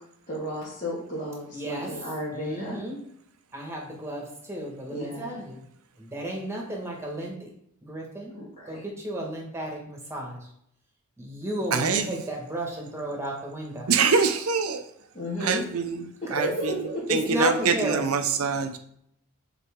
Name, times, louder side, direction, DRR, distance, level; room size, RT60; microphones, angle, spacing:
voice 1, 0.3-2.8 4.9-5.4 8.3-8.8 15.1-15.6 16.2-17.3, equal, 35° left, -8 dB, 1.8 m, -33 dB
voice 2, 1.5-1.9 2.3-3.0 3.5-5.7 6.0-7.5 7.8-8.3 8.6-10.5 11.2-13.9 17.1-18.0, equal, 10° right, -1 dB, 1.5 m, -33 dB
voice 3, 11.7-12.2 13.9-14.9 15.4-18.8, right 5 dB, 70° right, 8 dB, 0.6 m, -25 dB
6.9 x 4.1 x 3.6 m, 0.72 s
head